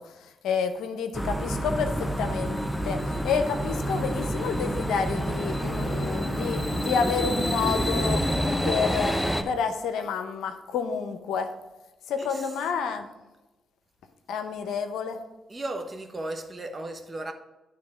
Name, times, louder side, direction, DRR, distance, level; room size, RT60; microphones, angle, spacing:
voice 1, 0.0-2.6 2.8-11.5 12.1-13.1 14.3-15.2, left 6 dB, 80° left, 0.6 m, -29 dB
sound 1, 1.1-9.4, equal, 5° left, 0.8 m, -28 dB
voice 2, 15.5-17.3, right 2 dB, 35° right, 1.1 m, -35 dB
9.7 x 3.6 x 5.0 m
hypercardioid pair, 45°, 0 cm